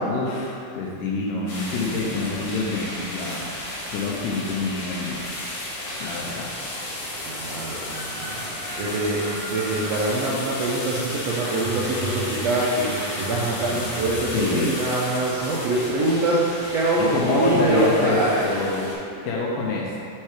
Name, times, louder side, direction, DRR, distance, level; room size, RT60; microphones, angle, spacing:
voice 1, 0.1-3.5 3.9-5.3 6.0-6.5 14.3-14.8 17.0-18.9 19.2-20.0, left 3 dB, 85° left, -3 dB, 2.3 m, -26 dB
sound 1, 1.5-18.9, left 1 dB, 60° left, 1.7 m, -33 dB
voice 2, 7.3-8.4 8.8-18.6, right 2 dB, 85° right, -6 dB, 1.4 m, -24 dB
sound 2, 10.9-11.3 11.6-14.7, right 2 dB, 70° right, 2.2 m, -35 dB
5.6 x 4.7 x 4.4 m, 2.5 s
omnidirectional pair, 3.7 m